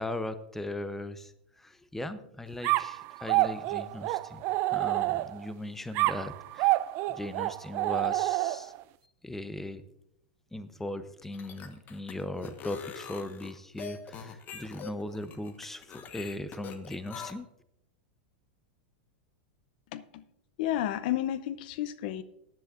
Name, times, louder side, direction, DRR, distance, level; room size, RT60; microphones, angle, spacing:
voice 1, 0.0-6.8 7.1-8.7 9.2-9.8 10.5-17.5, left 1 dB, 5° left, 11 dB, 0.7 m, -38 dB
sound 1, 2.6-5.5 6.0-8.8, right 18 dB, 45° right, 0.4 m, -28 dB
sound 2, 11.2-17.3, left 7 dB, 35° left, 1.2 m, -43 dB
voice 2, 19.9-20.2 20.6-22.2, left 12 dB, 60° left, 14 dB, 0.6 m, -31 dB
16.5 x 10.5 x 2.5 m, 0.80 s
hypercardioid pair, 115°, 5 cm